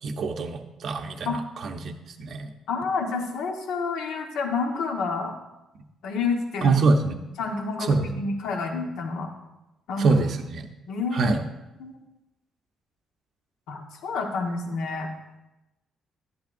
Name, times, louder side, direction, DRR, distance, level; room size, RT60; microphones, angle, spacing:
voice 1, 0.0-1.9 2.2-2.5 6.6-7.2 7.9-8.1 10.0-10.7 11.1-11.4, right 3 dB, 45° right, 4 dB, 0.6 m, -24 dB
voice 2, 2.7-5.4 6.0-6.7 7.4-9.3 9.9-10.1 10.9-11.3 11.8-12.0 13.7-15.1, left 4 dB, 90° left, 2 dB, 1.3 m, -29 dB
11.0 x 10.5 x 2.6 m, 0.97 s
cardioid pair, 175°, 0 cm